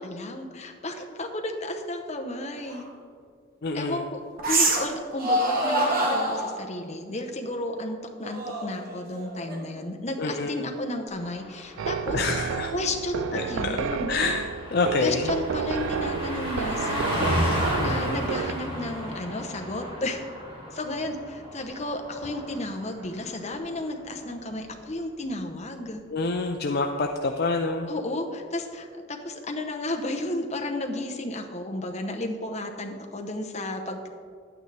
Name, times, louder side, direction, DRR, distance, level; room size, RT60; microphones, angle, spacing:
voice 1, 0.0-2.9 3.7-4.2 4.5-12.2 12.7-14.1 15.0-20.2 20.7-26.0 27.9-34.1, left 1 dB, 30° left, 4 dB, 0.8 m, -33 dB
sound 1, 2.7-2.8 4.4-4.9 5.2-6.6 8.2-9.8, right 1 dB, 45° right, 1.2 m, -25 dB
voice 2, 3.6-4.1 10.2-10.7 12.1-12.7 13.3-13.8 14.1-15.3 16.9-17.0 17.8-18.2 26.1-27.9, left 3 dB, 50° left, 3 dB, 0.4 m, -28 dB
Car passing by, 11.2-23.1 23.4-23.6, equal, 25° right, 2.0 m, -33 dB
sound 2, 11.8-18.5, right 6 dB, 65° right, 0.3 m, -31 dB
10.5 x 8.9 x 3.3 m, 2.2 s
head